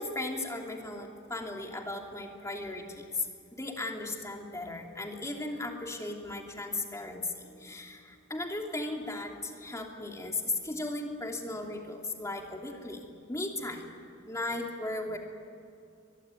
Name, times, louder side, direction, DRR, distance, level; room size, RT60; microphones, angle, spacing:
voice 1, 0.0-3.3 3.5-13.9 14.3-15.2, left 2 dB, 15° left, 1 dB, 3.1 m, -36 dB
23.5 x 21.5 x 9.5 m, 2.5 s
head